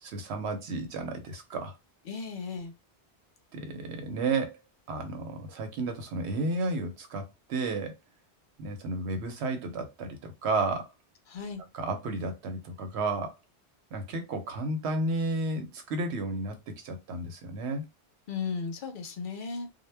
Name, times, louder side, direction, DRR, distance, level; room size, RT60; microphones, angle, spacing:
voice 1, 0.0-1.7 3.5-4.6 4.9-8.0 8.6-10.9 11.7-13.4 13.9-16.6 16.8-17.8, right 2 dB, 80° right, 1.0 m, -32 dB
voice 2, 2.1-2.7 11.3-11.6 18.3-19.7, left 5 dB, 60° left, 0.6 m, -35 dB
2.1 x 2.1 x 3.2 m
omnidirectional pair, 1.1 m